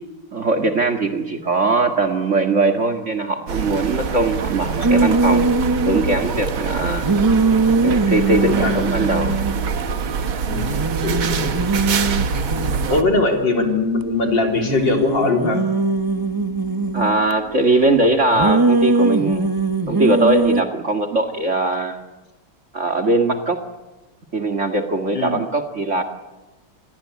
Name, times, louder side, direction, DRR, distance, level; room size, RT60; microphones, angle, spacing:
voice 1, 0.3-5.5 5.8-7.1 7.8-9.4 16.9-19.5 19.9-22.0 22.7-23.6 24.3-26.0, right 2 dB, 35° right, 4 dB, 2.2 m, -20 dB
sound 1, 3.5-13.0, right 5 dB, 70° right, 2.4 m, -25 dB
sound 2, 4.8-6.5 7.0-9.9 10.2-10.3 10.6-14.0 14.6-17.3 18.3-20.6, right 3 dB, 20° right, 0.6 m, -21 dB
voice 2, 8.5-8.8 10.5-11.5 12.6-15.6 25.1-25.3, left 3 dB, 60° left, 2 dB, 4.5 m, -21 dB
27.5 x 21.5 x 8.4 m, 1.1 s
omnidirectional pair, 2.3 m